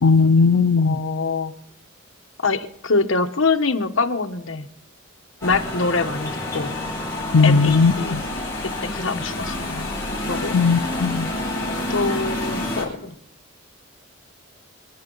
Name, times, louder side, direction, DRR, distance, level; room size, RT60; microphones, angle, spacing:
voice 1, 0.0-1.0 7.3-8.2 10.5-11.3, left 4 dB, 85° left, 0.6 m, -17 dB
voice 2, 0.8-1.5 2.4-4.7 5.4-6.7 7.4-8.2 8.6-9.9 10.3-10.6 11.9-13.1, left 4 dB, 70° left, 1.2 m, -24 dB
sound 1, 5.4-12.8, left 1 dB, 15° left, 7.9 m, -28 dB
27.5 x 11.0 x 4.0 m
head